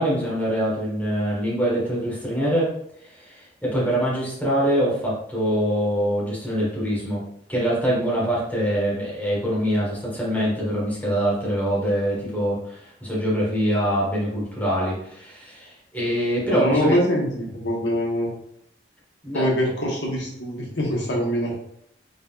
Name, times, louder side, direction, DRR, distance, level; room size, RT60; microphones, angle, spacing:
voice 1, 0.0-2.7 3.0-7.2 7.5-17.0 19.2-19.5, equal, 10° left, -6 dB, 1.5 m, -24 dB
voice 2, 16.5-18.3 19.3-21.5, equal, 75° left, -2 dB, 1.1 m, -23 dB
5.3 x 3.8 x 2.4 m, 0.72 s
head